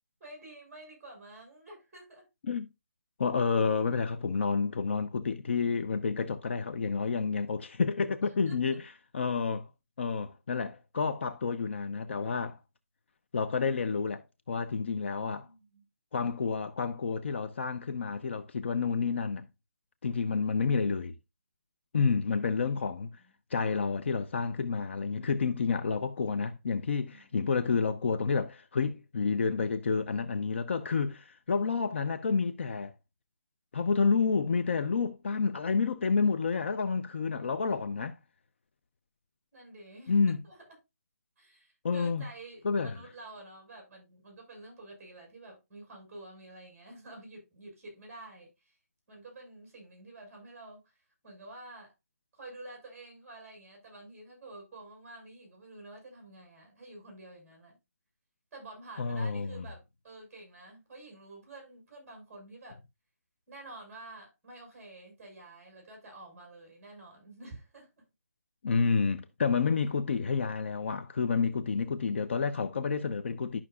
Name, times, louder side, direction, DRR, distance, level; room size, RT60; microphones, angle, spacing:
voice 1, 0.2-2.3 8.2-8.8 15.1-15.8 27.0-27.4 36.5-37.3 39.5-40.6 41.4-48.8 49.1-50.9 51.2-51.9 52.3-57.8 58.5-62.8 63.5-68.0, right 2 dB, 10° right, 5.4 m, -50 dB
voice 2, 3.2-9.7 10.0-12.6 13.3-14.2 14.5-15.5 16.1-19.5 20.0-21.1 21.9-23.1 23.5-32.9 33.7-38.1 40.1-40.4 41.8-42.2 42.6-42.9 59.0-59.6 68.6-73.6, left 5 dB, 50° left, 0.7 m, -29 dB
11.5 x 6.0 x 2.3 m
hypercardioid pair, 165°, 8 cm